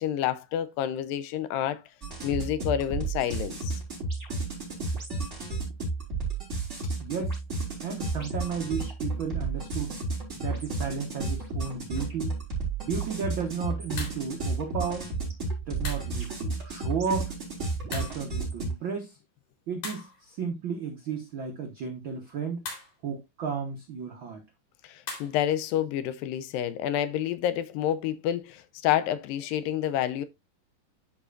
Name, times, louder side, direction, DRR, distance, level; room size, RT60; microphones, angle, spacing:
voice 1, 0.0-1.8 2.2-3.8 24.8-30.3, left 11 dB, 85° left, 2.4 m, -29 dB
sound 1, 2.0-18.7, right 3 dB, 20° right, 4.0 m, -32 dB
voice 2, 7.0-7.4 7.8-10.0 10.4-12.4 12.8-15.1 15.7-17.3 17.9-19.2 19.7-22.6 23.0-24.4, right 6 dB, 70° right, 1.1 m, -33 dB
sound 2, 11.9-12.2 14.0-14.3 15.8-16.2 17.9-18.3 19.8-20.3 22.7-23.0 25.1-25.4, left 3 dB, 60° left, 3.8 m, -39 dB
12.0 x 4.9 x 2.5 m
omnidirectional pair, 4.0 m